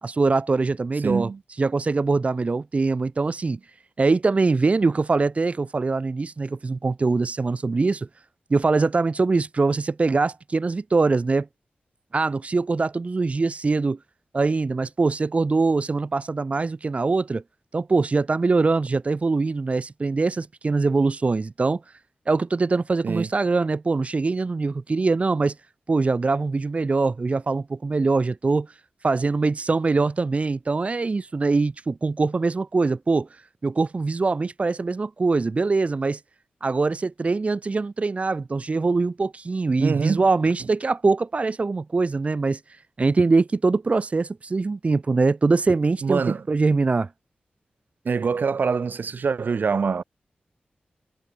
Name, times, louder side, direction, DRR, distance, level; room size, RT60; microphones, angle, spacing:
voice 1, 0.0-1.3 1.6-3.6 4.0-8.1 8.5-11.5 12.1-14.0 14.3-17.4 17.7-21.8 22.3-25.5 25.9-28.7 29.0-33.3 33.6-36.2 36.6-42.6 43.0-46.2 46.5-47.1, right 3 dB, 40° right, 1.5 m, -23 dB
voice 2, 1.0-1.4 23.0-23.3 39.8-40.3 46.0-46.4 48.0-50.0, right 5 dB, 70° right, 2.1 m, -24 dB
wide cardioid pair, 110°, 3 cm